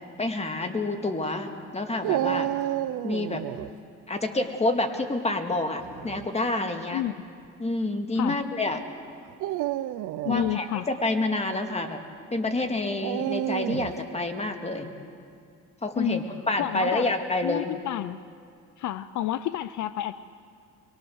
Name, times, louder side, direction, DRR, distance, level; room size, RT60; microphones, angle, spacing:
voice 1, 0.2-2.5 3.0-3.4 4.1-7.0 7.6-8.8 10.3-12.0 12.3-14.9 15.8-17.8, left 2 dB, 20° left, 5 dB, 2.1 m, -28 dB
Dog, 2.0-3.7 5.8-6.3 7.1-7.2 9.3-10.5 13.0-14.0, right 13 dB, 85° right, 0.6 m, -30 dB
voice 2, 10.2-10.9 15.9-16.2 16.6-17.1 17.4-18.2 18.8-20.1, left 13 dB, 75° left, 14 dB, 0.6 m, -29 dB
23.0 x 22.5 x 6.4 m, 2.3 s
cardioid pair, 90°, 30 cm